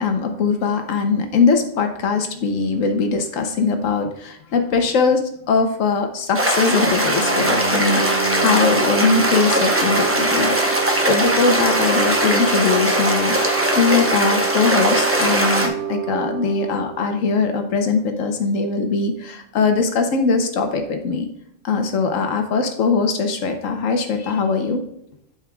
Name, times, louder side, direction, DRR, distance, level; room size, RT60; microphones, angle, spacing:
voice 1, 0.0-5.2 5.5-21.3 21.6-24.8, left 4 dB, 85° left, 5 dB, 1.2 m, -21 dB
sound 1, 6.3-15.7, right 1 dB, 15° right, 0.7 m, -20 dB
sound 2, 6.7-18.1, right 7 dB, 50° right, 1.1 m, -28 dB
12.0 x 4.5 x 2.4 m, 0.73 s
omnidirectional pair, 1.3 m